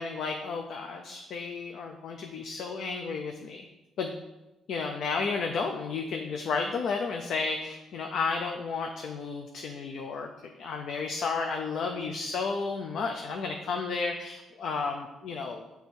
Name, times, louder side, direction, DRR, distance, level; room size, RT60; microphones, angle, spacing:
voice 1, 0.0-3.6 4.0-4.1 4.7-10.3 10.6-15.6, left 4 dB, 70° left, 3 dB, 0.5 m, -32 dB
6.8 x 3.5 x 4.3 m, 1.0 s
cardioid pair, 90°, 0 cm